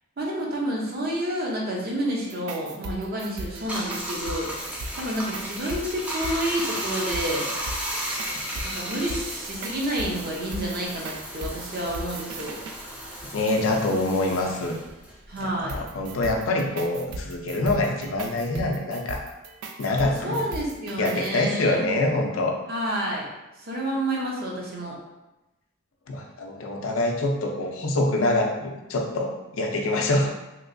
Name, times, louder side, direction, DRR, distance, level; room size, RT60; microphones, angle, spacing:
voice 1, 0.2-4.5 4.9-7.5 8.6-12.6 15.3-15.8 20.2-22.0 22.7-23.3 23.6-25.0, right 1 dB, 45° right, -2 dB, 0.7 m, -29 dB
sound 1, 2.2-12.8 15.7-21.3, right 2 dB, 80° right, 0.4 m, -38 dB
Bathtub (filling or washing), 3.5-16.3 16.6-18.5, equal, 5° right, 0.4 m, -35 dB
voice 2, 13.3-14.8 15.4-19.3 19.8-20.4 21.0-22.6 26.1-30.3, left 2 dB, 60° left, 2 dB, 0.5 m, -25 dB
3.0 x 2.9 x 2.6 m, 1.0 s
head